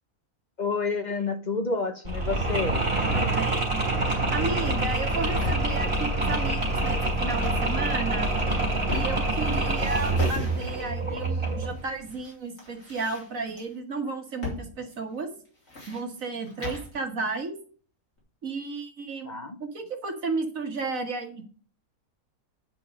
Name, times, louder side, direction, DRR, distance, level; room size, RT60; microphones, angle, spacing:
voice 1, 0.6-2.9 19.3-19.6, left 4 dB, 40° left, 0.7 m, -29 dB
Mechanisms, 2.0-11.8, right 2 dB, 40° right, 3.6 m, -26 dB
voice 2, 3.1-3.9 4.3-8.3 8.9-15.3 15.9-17.6 18.4-21.4, right 4 dB, 65° right, 2.0 m, -33 dB
sound 1, 5.2-5.8 7.3-7.7 8.2-9.4 9.7-11.0 11.7-12.3 12.6-13.6 14.4-14.7 14.9-15.0 15.4-16.9, left 3 dB, 65° left, 4.0 m, -36 dB
8.9 x 5.6 x 6.4 m
omnidirectional pair, 1.5 m